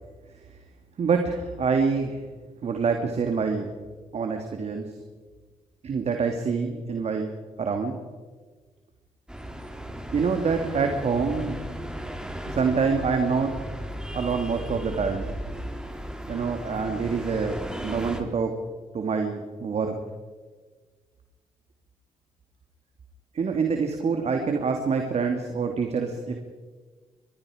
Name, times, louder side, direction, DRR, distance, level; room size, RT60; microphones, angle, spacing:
voice 1, 1.0-2.2 2.6-3.7 4.1-4.9 5.8-7.3 7.6-8.0 10.1-11.6 12.5-13.6 14.1-15.3 16.3-18.5 18.9-20.0 23.3-26.4, right 5 dB, 55° right, 4 dB, 2.4 m, -26 dB
sound 1, 9.3-18.2, equal, 5° right, 3.7 m, -36 dB
25.5 x 21.5 x 5.0 m, 1.4 s
supercardioid pair, 55°, 13 cm